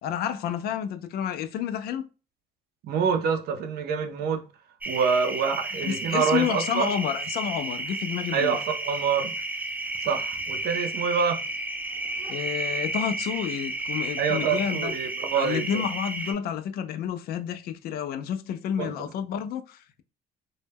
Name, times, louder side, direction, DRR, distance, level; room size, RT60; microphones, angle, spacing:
voice 1, 0.0-2.1 5.8-8.6 12.3-14.9 15.3-20.0, left 9 dB, 65° left, 0.4 m, -30 dB
voice 2, 2.8-4.4 4.9-6.9 8.3-9.4 10.0-11.4 14.2-15.8 18.8-19.1, right 6 dB, 65° right, 0.5 m, -26 dB
sound 1, 4.8-16.3, right 2 dB, 10° right, 0.4 m, -32 dB
2.1 x 2.1 x 3.3 m
cardioid pair, 110°, 17 cm